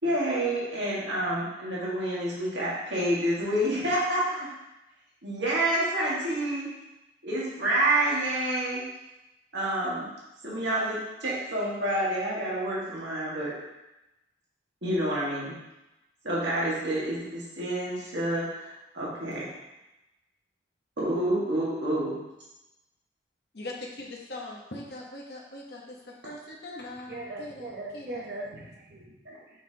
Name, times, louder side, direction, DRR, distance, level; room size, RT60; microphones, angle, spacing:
voice 1, 0.0-4.5 5.2-6.7 7.2-8.9 9.5-10.1 10.4-13.5 14.8-15.6 16.2-19.5 21.0-22.2 29.3-29.4, right 1 dB, 75° right, -7 dB, 1.8 m, -28 dB
voice 2, 23.5-26.0 26.2-28.2, left 1 dB, 60° left, -2 dB, 1.1 m, -41 dB
voice 3, 27.1-29.6, right 2 dB, 60° right, -2 dB, 0.9 m, -40 dB
5.9 x 5.7 x 2.9 m, 0.97 s
head